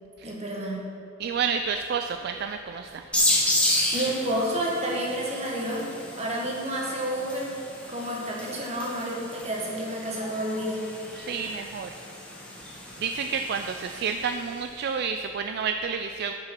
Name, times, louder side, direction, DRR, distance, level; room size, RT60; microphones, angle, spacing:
voice 1, 0.2-0.8 3.9-7.5 7.9-10.8, right 1 dB, 30° right, -3 dB, 1.5 m, -30 dB
voice 2, 1.2-3.1 11.1-11.9 13.0-16.3, right 6 dB, 50° right, 7 dB, 0.3 m, -30 dB
sound 1, 3.1-14.5, left 1 dB, 5° left, 1.2 m, -32 dB
6.9 x 6.8 x 5.9 m, 2.9 s
head